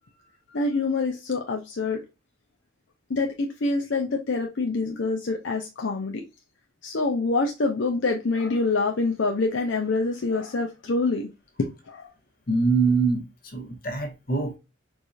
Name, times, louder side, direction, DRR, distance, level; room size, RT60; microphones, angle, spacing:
voice 1, 0.5-2.0 3.1-6.2 6.8-11.3 11.9-12.1, left 3 dB, 70° left, 0.6 m, -26 dB
voice 2, 12.5-14.6, right 4 dB, 45° left, 1.0 m, -24 dB
4.6 x 2.6 x 2.3 m
head